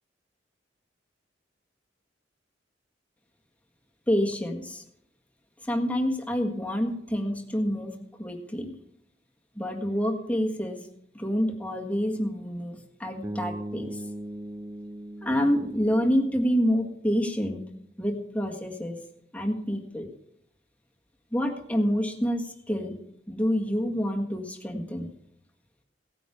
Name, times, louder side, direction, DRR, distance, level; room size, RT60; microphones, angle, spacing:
voice 1, 4.1-4.8 5.6-8.7 9.5-10.9 11.1-14.0 15.2-17.6 18.0-19.0 19.3-20.1 21.3-23.0 23.3-25.1, equal, 10° left, 2 dB, 1.7 m, -27 dB
Bass guitar, 13.2-17.3, right 1 dB, 10° right, 1.0 m, -39 dB
17.5 x 9.2 x 5.0 m, 0.76 s
head